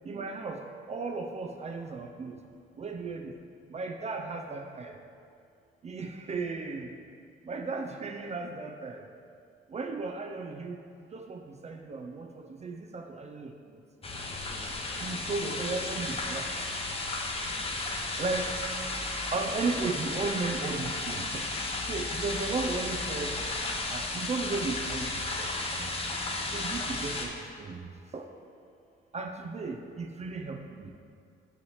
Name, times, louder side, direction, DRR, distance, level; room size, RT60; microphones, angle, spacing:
voice 1, 0.1-0.6 0.9-2.4 2.8-3.3 3.7-4.9 5.8-6.9 7.5-9.0 9.7-10.8 11.1-13.5 15.0-16.5 18.2-18.5 19.3-21.4 21.9-23.4 23.9-25.5 25.8-25.9 26.5-27.3 27.6-27.9 28.1-28.3 29.1-30.9, right 3 dB, 35° right, 4 dB, 0.4 m, -35 dB
sound 1, 14.0-27.3, left 2 dB, 30° left, 0.7 m, -34 dB
5.9 x 3.1 x 5.6 m, 2.4 s
cardioid pair, 90°, 20 cm